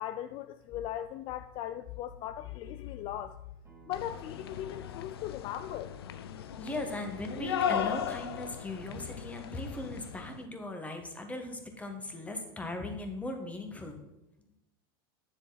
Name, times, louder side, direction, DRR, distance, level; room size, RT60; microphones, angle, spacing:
voice 1, 0.0-3.4 3.9-5.9, left 11 dB, 45° left, 0.4 m, -38 dB
Acoustic guitar, 3.6-8.8, right 5 dB, 15° right, 2.5 m, -61 dB
sound 1, 3.9-10.4, left 8 dB, 85° left, 0.6 m, -37 dB
voice 2, 6.6-14.0, left 2 dB, 10° left, 1.6 m, -38 dB
9.7 x 7.0 x 4.2 m
hypercardioid pair, 115°, 13 cm